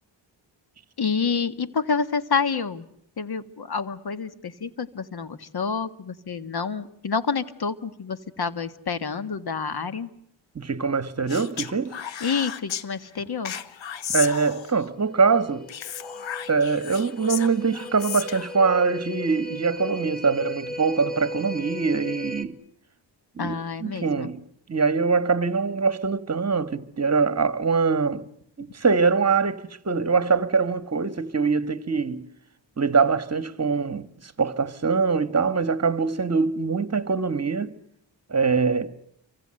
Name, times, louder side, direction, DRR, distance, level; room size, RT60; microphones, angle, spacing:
voice 1, 1.0-2.9 3.2-10.1 12.2-13.6 23.4-24.3, left 5 dB, 55° left, 1.8 m, -28 dB
voice 2, 10.5-11.9 14.1-15.7 16.5-22.6 23.4-24.4 24.7-28.2 28.6-32.2 32.8-34.1 34.4-37.7 38.3-38.9, right 5 dB, 35° right, 1.6 m, -23 dB
Speech, 11.3-12.8 13.4-14.9 15.7-18.6, left 8 dB, 70° left, 1.5 m, -34 dB
sound 1, 14.9-22.4, left 1 dB, 20° left, 2.6 m, -37 dB
29.0 x 24.5 x 7.8 m
cardioid pair, 75°, 46 cm